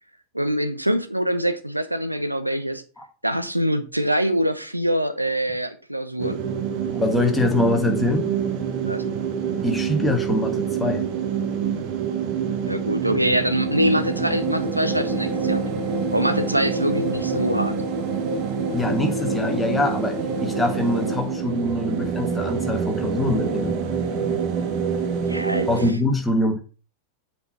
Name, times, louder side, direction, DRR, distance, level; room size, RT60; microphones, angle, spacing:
voice 1, 0.3-2.8 3.2-6.5 8.8-9.0 12.6-15.7 16.1-17.8 25.3-25.7, equal, 85° right, 0.7 m, -24 dB
sound 1, 6.2-25.9, right 6 dB, 40° right, 1.2 m, -26 dB
voice 2, 6.9-8.3 9.6-11.0 18.7-23.8 25.7-26.6, left 2 dB, 10° left, 1.7 m, -24 dB
7.8 x 4.7 x 4.3 m
figure-of-eight pair, 90°, 0 cm